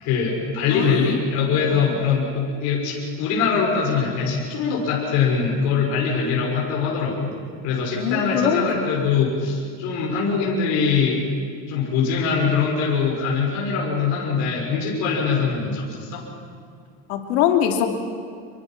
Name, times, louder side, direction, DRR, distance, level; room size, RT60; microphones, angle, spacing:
voice 1, 0.0-7.3 7.6-11.2 11.7-16.3, left 5 dB, 60° left, -3 dB, 6.3 m, -22 dB
voice 2, 8.0-8.9 17.1-17.9, left 9 dB, 85° left, 3 dB, 2.9 m, -22 dB
27.5 x 23.0 x 6.0 m, 2.1 s
cardioid pair, 150°, 32 cm